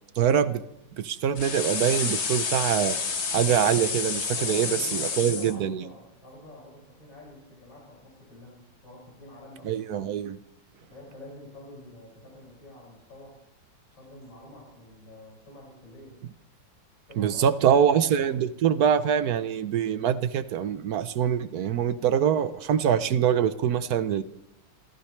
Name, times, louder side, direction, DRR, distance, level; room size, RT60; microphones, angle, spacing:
voice 1, 0.2-0.6 1.0-3.0 3.3-5.8 9.6-10.4 17.2-24.2, right 9 dB, 60° right, 12 dB, 1.1 m, -24 dB
sound 1, 1.4-5.5, left 5 dB, 40° left, 1.3 m, -29 dB
voice 2, 4.2-9.8 10.8-13.4 13.9-16.2 17.1-18.3, left 1 dB, 90° left, -6 dB, 6.6 m, -47 dB
26.5 x 15.0 x 3.3 m, 0.83 s
omnidirectional pair, 2.0 m